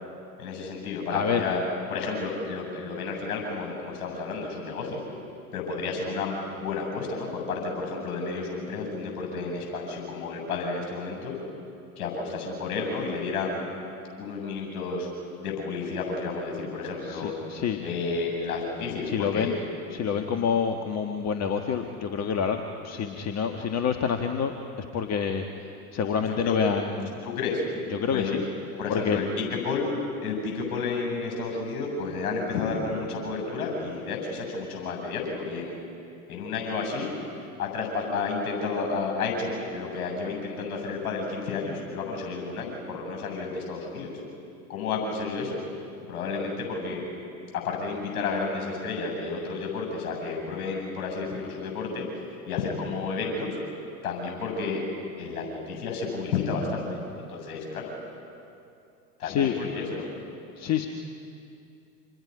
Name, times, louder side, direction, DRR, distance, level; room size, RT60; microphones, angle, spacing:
voice 1, 0.4-1.6 1.9-5.0 5.5-11.4 12.0-13.6 14.2-15.1 15.4-17.3 17.8-19.5 20.1-20.3 26.3-26.6 27.2-27.6 28.1-28.4 28.8-29.9 30.2-35.8 36.3-37.1 37.6-44.1 44.7-45.6 46.1-47.0 47.6-53.6 54.0-54.8 55.2-57.9 59.2-60.1, left 4 dB, 60° left, 2 dB, 8.0 m, -31 dB
voice 2, 1.1-1.4 17.0-17.8 19.1-19.6 19.9-24.5 24.8-25.5 25.9-27.2 27.9-28.4 28.9-29.2 59.2-59.5 60.6-60.9, left 7 dB, 35° left, 5 dB, 1.4 m, -27 dB
29.0 x 27.0 x 5.5 m, 2.6 s
figure-of-eight pair, 80°, 46 cm